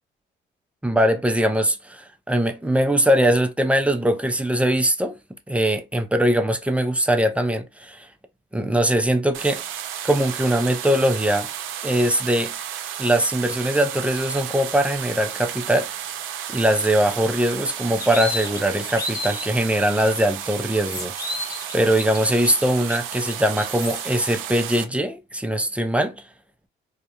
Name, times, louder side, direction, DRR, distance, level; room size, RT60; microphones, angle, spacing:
voice 1, 0.8-5.1 5.5-8.1 8.5-9.6 10.0-11.5 11.8-12.5 13.0-15.9 16.5-21.5 21.7-26.2, right 1 dB, 5° right, 0.4 m, -21 dB
sound 1, 9.3-24.8, right 10 dB, 85° right, 0.5 m, -33 dB
sound 2, 17.7-19.5 20.0-20.1 20.5-24.0, left 2 dB, 15° left, 0.9 m, -33 dB
2.3 x 2.0 x 2.8 m
cardioid pair, 90°, 20 cm